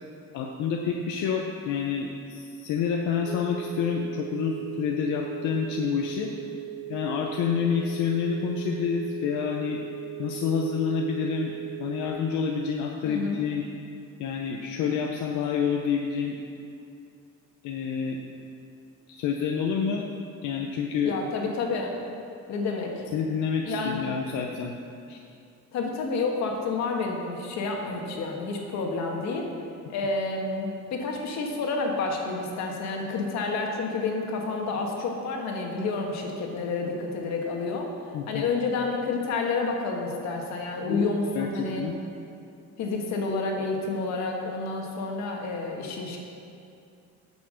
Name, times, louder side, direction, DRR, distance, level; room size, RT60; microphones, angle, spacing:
voice 1, 0.3-6.3 6.9-9.8 10.2-13.6 14.2-16.4 17.6-18.2 19.1-20.1 20.4-21.1 23.1-24.7 25.1-25.2 38.1-38.4 40.9-41.9, left 6 dB, 85° left, 1 dB, 0.8 m, -28 dB
sound 1, 3.2-12.1, right 14 dB, 20° right, 1.6 m, -39 dB
voice 2, 13.0-13.4 21.0-21.9 22.5-23.0 23.6-24.1 25.7-29.5 29.9-37.9 38.3-41.9 42.8-46.2, left 3 dB, 65° left, 1 dB, 1.6 m, -29 dB
9.5 x 7.2 x 6.4 m, 2.6 s
cardioid pair, 175°, 29 cm